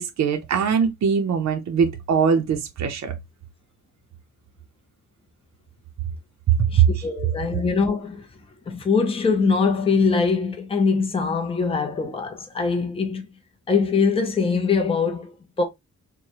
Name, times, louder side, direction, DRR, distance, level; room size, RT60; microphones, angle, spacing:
voice 1, 0.0-3.1 6.6-7.0, right 7 dB, 60° right, 0.6 m, -21 dB
voice 2, 6.7-8.3 8.7-13.3 13.7-15.6, left 5 dB, 20° left, 0.6 m, -22 dB
4.6 x 2.2 x 2.8 m
wide cardioid pair, 165°, 31 cm